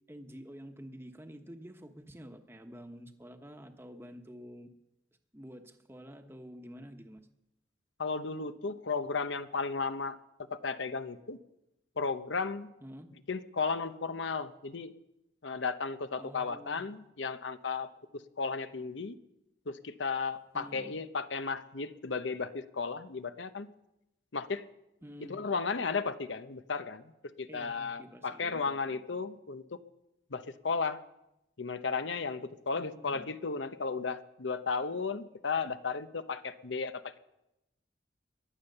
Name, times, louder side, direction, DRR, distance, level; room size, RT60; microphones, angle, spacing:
voice 1, 0.1-4.7 5.3-7.2 12.8-13.1 16.2-17.0 20.5-21.0 25.0-25.4 27.5-29.0 32.8-33.3, equal, 15° right, 6 dB, 1.1 m, -49 dB
voice 2, 8.0-10.2 10.5-11.4 12.0-12.7 13.3-14.9 15.4-17.9 18.1-19.2 19.7-23.7 24.3-24.7 25.3-29.8 30.3-31.0 31.6-37.2, left 4 dB, 90° left, 11 dB, 0.9 m, -34 dB
22.5 x 8.8 x 6.8 m, 0.89 s
head